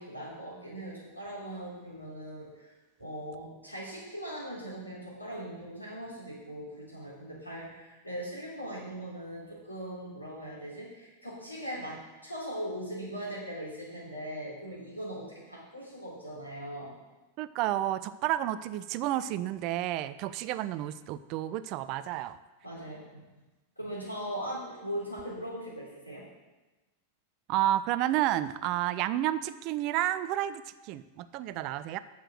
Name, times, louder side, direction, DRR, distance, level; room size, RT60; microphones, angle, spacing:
voice 1, 0.0-2.7 3.0-16.9 22.6-23.1 23.8-26.3, equal, 85° left, -6 dB, 3.5 m, -40 dB
voice 2, 17.4-22.4 27.5-32.0, right 13 dB, 40° right, 14 dB, 0.4 m, -31 dB
7.5 x 6.7 x 6.3 m, 1.1 s
figure-of-eight pair, 90°, 0 cm